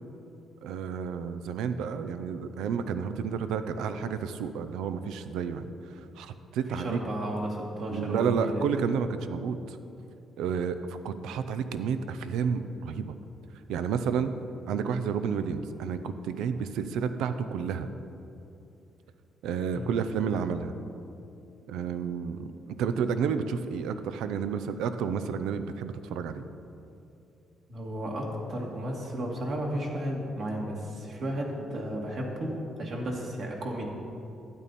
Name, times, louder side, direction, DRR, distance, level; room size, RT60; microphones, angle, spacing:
voice 1, 0.6-5.7 6.2-7.0 7.9-9.8 10.4-13.2 13.7-14.3 14.7-17.9 19.4-20.7 21.7-26.4, right 6 dB, 90° right, 11 dB, 0.5 m, -31 dB
voice 2, 6.7-8.6 19.7-20.0 27.7-34.0, right 1 dB, 60° right, -1 dB, 2.2 m, -33 dB
12.5 x 9.1 x 4.2 m, 2.7 s
cardioid pair, 90°, 0 cm